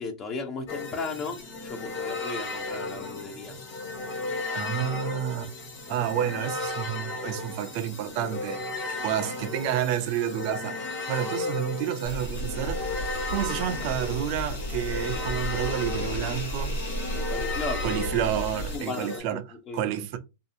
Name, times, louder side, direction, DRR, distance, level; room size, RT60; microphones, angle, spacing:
voice 1, 0.0-3.6 17.1-17.8 18.7-19.8, left 4 dB, 25° left, 0.5 m, -35 dB
sound 1, 0.7-19.2, left 3 dB, 40° left, 1.3 m, -35 dB
voice 2, 4.5-5.5 5.9-8.6 9.0-10.8 11.1-16.8 17.8-19.5 19.7-20.2, right 10 dB, 50° right, 0.4 m, -30 dB
sound 2, 12.0-18.8, equal, 75° left, 1.2 m, -33 dB
2.6 x 2.4 x 2.5 m
supercardioid pair, 145°, 0 cm